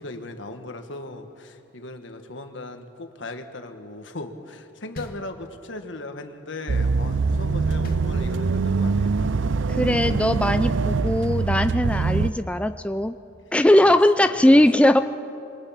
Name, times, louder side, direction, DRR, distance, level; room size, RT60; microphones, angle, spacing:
voice 1, 0.0-9.4 13.8-14.6, left 2 dB, 70° left, 6 dB, 1.7 m, -38 dB
sound 1, 5.0-5.9 7.8-8.8, left 1 dB, 50° left, 1.6 m, -40 dB
sound 2, 6.7-12.3, right 4 dB, 75° right, 0.5 m, -23 dB
voice 2, 9.7-13.1 13.5-15.0, left 1 dB, 5° left, 9 dB, 0.4 m, -19 dB
27.0 x 22.5 x 6.0 m, 2.7 s
head